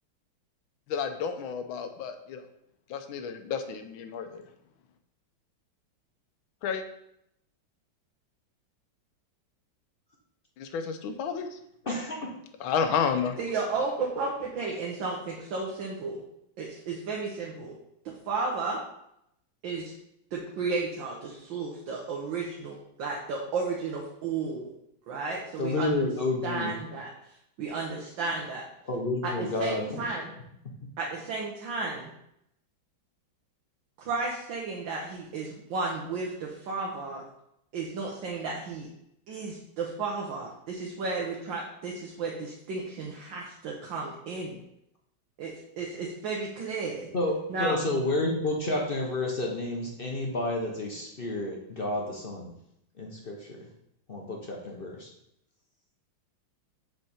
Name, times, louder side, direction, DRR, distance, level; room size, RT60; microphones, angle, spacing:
voice 1, 0.9-2.4 2.9-4.4 6.6-6.8 10.6-11.6 12.6-13.4, left 6 dB, 85° left, 8 dB, 1.5 m, -31 dB
voice 2, 11.8-12.2 25.6-26.8 28.8-30.1 47.1-47.3 47.6-52.5 53.0-53.6 54.1-55.1, left 2 dB, 45° left, -1 dB, 0.7 m, -30 dB
voice 3, 13.4-16.2 16.6-17.8 18.0-18.8 19.6-19.9 20.3-24.7 25.1-26.0 26.4-27.1 27.6-28.6 29.2-30.2 31.0-32.1 34.0-37.2 37.7-38.9 39.3-44.6 45.4-47.1 47.5-47.8, right 4 dB, 70° right, -2 dB, 1.6 m, -33 dB
6.5 x 4.6 x 4.2 m, 0.78 s
omnidirectional pair, 2.2 m